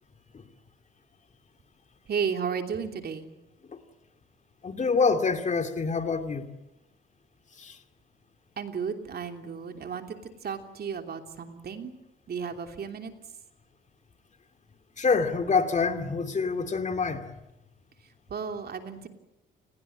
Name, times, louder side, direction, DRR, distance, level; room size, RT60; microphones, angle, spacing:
voice 1, 2.1-3.3 8.6-11.9 12.3-13.1 16.2-16.3 18.3-19.1, right 6 dB, 50° right, 3.1 m, -34 dB
voice 2, 4.6-6.5 7.6-7.8 15.0-17.2, left 4 dB, 35° left, 2.6 m, -26 dB
29.5 x 20.0 x 8.7 m
cardioid pair, 90°, 20 cm